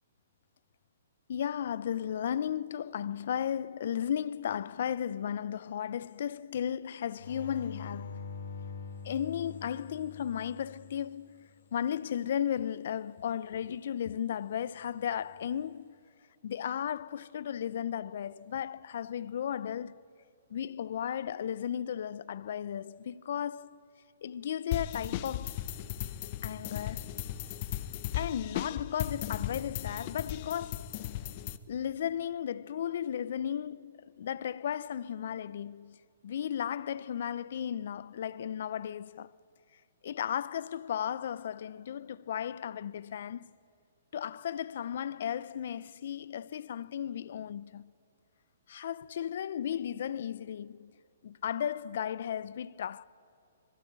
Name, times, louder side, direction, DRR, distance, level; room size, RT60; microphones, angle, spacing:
voice 1, 1.3-8.2 9.0-15.9 16.4-20.0 20.5-23.8 24.2-25.6 26.4-27.2 28.1-30.9 31.7-36.0 36.2-39.3 40.0-43.5 44.1-47.9 48.7-50.9 51.2-53.0, left 9 dB, 60° left, 0.7 m, -35 dB
sound 1, 7.2-11.8 15.1-15.6, left 4 dB, 80° left, 3.5 m, -45 dB
sound 2, 24.7-31.6, left 12 dB, 40° left, 1.1 m, -36 dB
24.5 x 22.5 x 8.8 m
hypercardioid pair, 140°, 0 cm